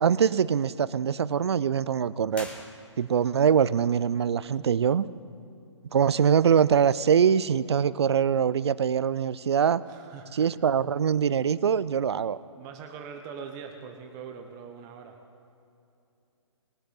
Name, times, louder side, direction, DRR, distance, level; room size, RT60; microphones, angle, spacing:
voice 1, 0.0-2.5 3.0-5.0 5.9-9.8 10.3-12.4, right 7 dB, 60° right, 18 dB, 0.5 m, -23 dB
sound 1, 2.3-3.4, left 1 dB, 5° left, 1.2 m, -44 dB
voice 2, 9.9-10.7 12.5-15.2, right 6 dB, 20° right, 4 dB, 0.9 m, -42 dB
21.5 x 8.0 x 4.1 m, 2.7 s
figure-of-eight pair, 140°, 15 cm